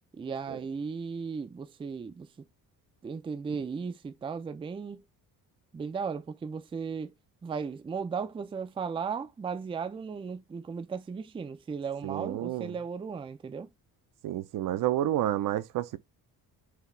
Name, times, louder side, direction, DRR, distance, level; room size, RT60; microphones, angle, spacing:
voice 1, 0.1-2.3 3.0-5.0 5.7-7.1 7.4-13.7, right 5 dB, 15° right, 0.4 m, -36 dB
voice 2, 12.0-12.7 14.2-16.0, right 13 dB, 60° right, 0.6 m, -30 dB
4.8 x 2.8 x 3.2 m
cardioid pair, 140°, 36 cm